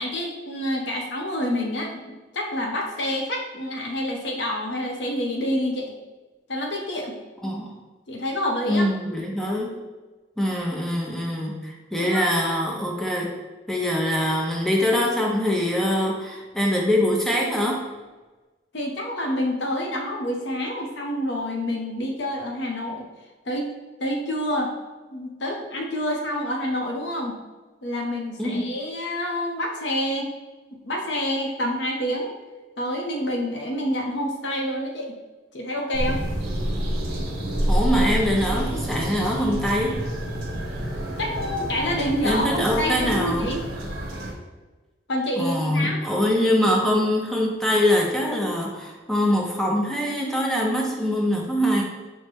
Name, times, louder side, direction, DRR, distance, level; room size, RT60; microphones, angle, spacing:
voice 1, 0.0-2.0 2.3-5.9 6.5-7.2 8.1-8.9 12.0-12.3 18.7-23.0 23.4-23.7 24.0-24.7 25.1-27.4 27.8-30.3 30.8-32.3 32.8-35.2 35.5-36.2 41.2-43.6 45.1-46.0, equal, 65° left, 1 dB, 0.7 m, -27 dB
voice 2, 7.4-7.8 8.7-9.8 10.4-13.3 13.7-17.9 28.4-28.7 37.7-40.0 42.2-43.5 45.4-51.8, equal, ahead, -1 dB, 0.5 m, -23 dB
sound 1, 35.9-44.3, equal, 60° right, 1.0 m, -28 dB
5.2 x 2.1 x 3.3 m, 1.2 s
head